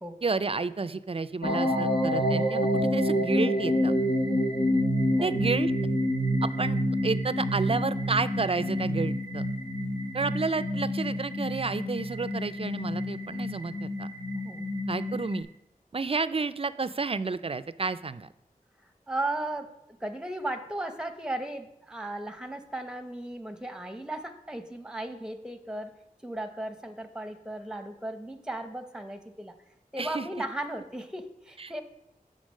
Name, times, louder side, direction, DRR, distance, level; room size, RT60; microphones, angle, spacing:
voice 1, 0.2-3.9 5.2-5.7 6.4-6.8 7.0-9.5 10.1-14.1 14.9-15.5 15.9-18.3 30.0-30.3 31.6-31.8, right 4 dB, 40° right, 15 dB, 0.3 m, -30 dB
sound 1, 1.4-15.4, equal, 80° left, 1.4 m, -28 dB
voice 2, 18.8-19.7 20.0-25.9 26.2-29.5 29.9-31.8, right 1 dB, 5° right, 7 dB, 0.7 m, -36 dB
8.0 x 3.8 x 6.3 m, 0.82 s
wide cardioid pair, 45°, 15 cm